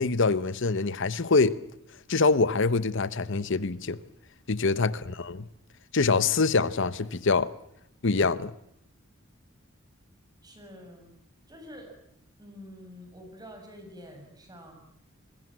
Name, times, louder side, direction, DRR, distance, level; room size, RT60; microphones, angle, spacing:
voice 1, 0.0-1.6 2.1-4.0 4.5-5.4 5.9-7.5 8.0-8.5, left 4 dB, 65° left, 0.9 m, -24 dB
voice 2, 4.6-5.0 10.4-11.1 11.5-11.9 12.4-14.7, equal, 20° right, 6.8 m, -47 dB
26.5 x 21.5 x 7.5 m
head